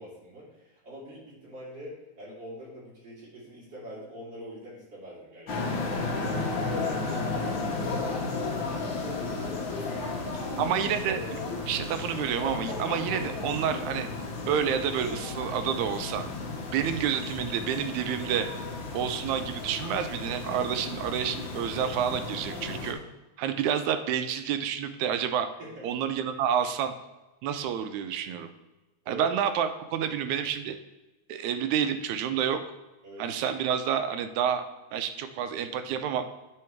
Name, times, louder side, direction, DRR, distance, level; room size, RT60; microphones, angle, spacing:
voice 1, 0.0-10.8 12.7-12.9 23.5-23.6 25.6-25.9 29.0-29.3 33.0-33.3, equal, 40° right, -7 dB, 3.3 m, -44 dB
sound 1, 5.5-22.9, left 3 dB, 60° left, 1.3 m, -34 dB
voice 2, 10.6-11.4 11.7-14.1 14.5-16.3 16.7-18.5 18.9-23.0 23.4-25.5 25.8-26.9 27.4-28.5 29.1-30.8 31.3-32.6 33.2-34.6 34.9-36.3, right 8 dB, 80° right, 9 dB, 1.9 m, -29 dB
9.9 x 3.9 x 4.5 m, 1.1 s
omnidirectional pair, 3.4 m